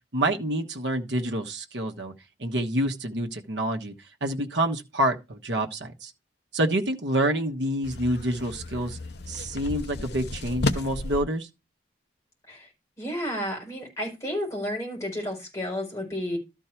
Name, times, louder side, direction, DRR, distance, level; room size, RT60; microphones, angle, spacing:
voice 1, 0.1-2.1 2.4-3.9 4.2-6.1 6.5-9.0 9.3-11.5, right 1 dB, 70° right, 1.3 m, -27 dB
sound 1, 7.8-11.2, left 2 dB, 60° left, 0.9 m, -32 dB
voice 2, 13.0-16.4, equal, 15° left, 4.7 m, -31 dB
12.5 x 4.7 x 4.5 m
head